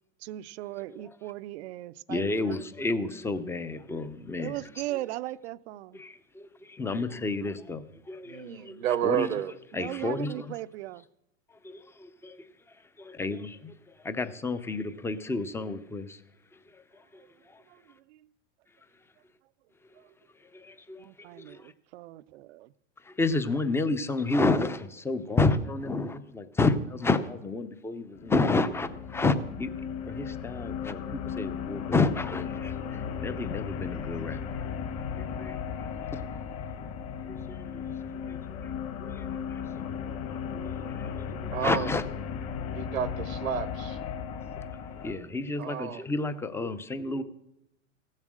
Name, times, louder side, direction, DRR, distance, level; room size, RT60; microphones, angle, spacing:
voice 1, 0.2-2.6 4.4-6.0 9.7-11.0 17.7-18.3 20.0-20.2 21.0-22.7, right 16 dB, 55° right, 0.5 m, -38 dB
voice 2, 2.1-4.6 5.9-8.8 9.0-9.3 9.7-10.5 11.6-12.4 12.7-13.7 14.0-16.2 16.7-17.6 20.5-21.7 23.0-34.7 35.2-36.2 37.3-37.8 38.1-38.7 39.0-39.6 40.5-42.0 44.6-44.7 45.0-47.2, left 3 dB, 5° left, 0.5 m, -31 dB
voice 3, 8.2-9.5 41.5-41.9 42.7-44.0 45.6-46.0, right 10 dB, 85° right, 1.0 m, -30 dB
sound 1, 28.1-45.1, left 7 dB, 40° left, 1.7 m, -36 dB
15.5 x 7.4 x 6.3 m
hypercardioid pair, 110°, 40 cm